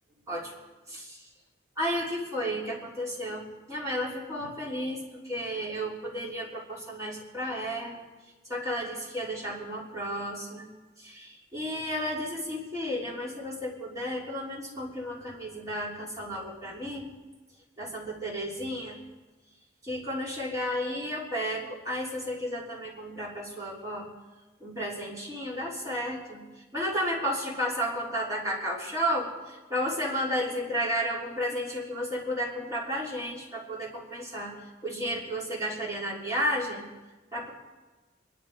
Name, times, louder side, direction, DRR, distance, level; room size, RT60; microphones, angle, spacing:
voice 1, 0.9-1.2 1.8-3.4 3.7-8.0 8.5-10.7 11.0-17.1 17.8-19.0 19.8-24.1 24.6-26.4 26.7-34.5 34.8-36.8 37.3-37.5, equal, 15° right, -5 dB, 3.5 m, -32 dB
23.5 x 11.5 x 4.8 m, 1.2 s
head